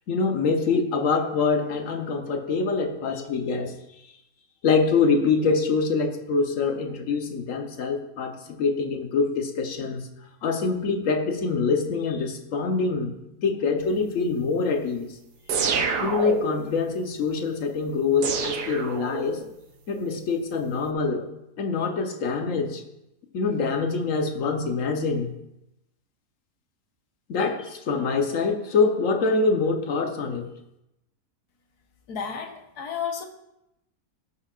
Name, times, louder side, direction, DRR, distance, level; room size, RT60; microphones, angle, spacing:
voice 1, 0.1-3.7 4.6-10.1 10.4-13.1 13.4-15.1 16.0-19.4 19.9-21.3 21.6-22.8 23.3-25.3 27.3-30.5, left 4 dB, 60° left, 5 dB, 1.3 m, -25 dB
sound 1, 15.5-16.7 18.2-19.5, right 5 dB, 85° right, 1.5 m, -27 dB
voice 2, 32.1-33.3, left 7 dB, 80° left, 4 dB, 1.6 m, -32 dB
17.0 x 6.5 x 2.5 m, 0.87 s
omnidirectional pair, 1.7 m